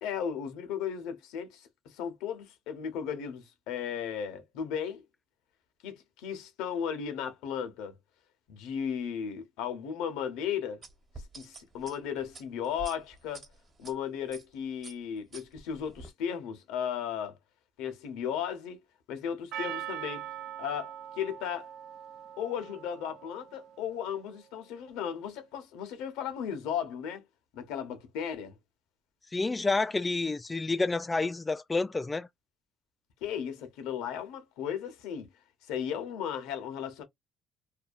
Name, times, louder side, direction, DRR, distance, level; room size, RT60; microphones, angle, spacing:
voice 1, 0.0-5.0 5.8-7.9 8.5-10.8 11.4-13.5 13.8-17.4 17.8-20.2 20.6-21.7 22.4-27.2 27.5-28.5 33.2-35.3 35.7-37.0, left 8 dB, 90° left, 0.8 m, -35 dB
sound 1, 10.8-13.9 14.3-14.5 14.8-16.1, right 3 dB, 35° right, 1.1 m, -47 dB
Percussion, 19.5-24.1, right 11 dB, 80° right, 0.5 m, -42 dB
voice 2, 29.3-32.3, left 3 dB, 20° left, 0.3 m, -29 dB
2.7 x 2.2 x 2.5 m
cardioid pair, 95°, 0 cm